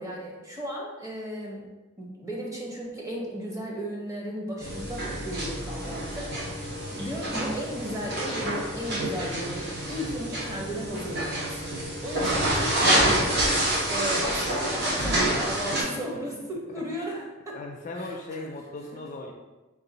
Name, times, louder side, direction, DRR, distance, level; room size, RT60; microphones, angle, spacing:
voice 1, 0.0-1.7 2.0-13.5 13.9-17.6 18.0-18.4, equal, 15° right, -3 dB, 0.8 m, -35 dB
sound 1, 4.6-15.8, right 1 dB, 55° right, 1.0 m, -27 dB
voice 2, 17.5-19.3, left 2 dB, 40° left, 3 dB, 0.3 m, -38 dB
3.8 x 2.3 x 3.9 m, 1.2 s
head